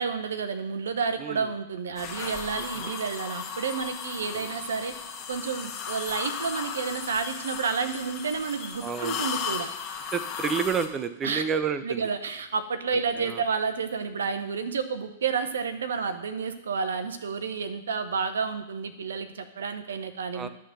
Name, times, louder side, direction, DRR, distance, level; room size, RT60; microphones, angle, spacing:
voice 1, 0.0-4.9 5.3-9.7 11.2-11.4 11.8-20.5, right 5 dB, 75° right, 9 dB, 0.9 m, -30 dB
sound 1, 2.0-10.9, left 7 dB, 35° left, 1.3 m, -36 dB
voice 2, 2.5-2.9 8.8-9.3 10.1-12.0 13.2-13.4 20.3-20.5, right 6 dB, 25° right, 11 dB, 0.6 m, -30 dB
11.5 x 3.8 x 6.7 m, 0.85 s
hypercardioid pair, 115°, 0 cm